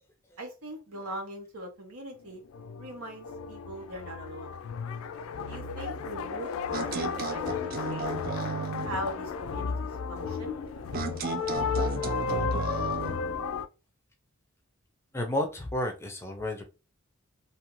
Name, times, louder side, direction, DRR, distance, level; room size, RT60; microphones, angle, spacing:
voice 1, 0.4-2.4 2.8-4.5 5.5-8.1 8.8-10.5, right 1 dB, 80° right, 2 dB, 0.9 m, -41 dB
sound 1, 2.3-13.7, left 5 dB, 75° left, 0.3 m, -33 dB
sound 2, 6.7-9.0 10.9-13.2, right 5 dB, 40° right, 0.3 m, -34 dB
voice 2, 15.1-16.6, left 1 dB, 10° left, 3 dB, 0.5 m, -32 dB
2.8 x 2.4 x 3.0 m, 0.29 s
head